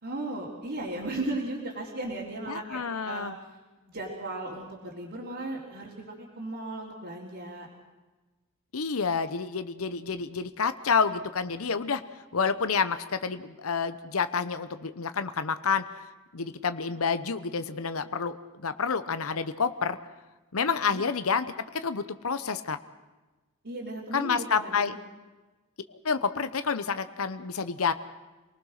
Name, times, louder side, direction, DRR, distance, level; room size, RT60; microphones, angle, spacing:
voice 1, 0.0-3.5 3.8-7.7 20.8-21.0 23.6-24.9, right 2 dB, 55° right, -5 dB, 3.6 m, -36 dB
voice 2, 2.5-3.3 8.7-12.0 12.3-15.8 16.3-20.0 20.5-22.8 24.1-25.0 26.0-27.9, left 5 dB, 75° left, 11 dB, 0.9 m, -29 dB
27.5 x 19.5 x 6.5 m, 1.2 s
head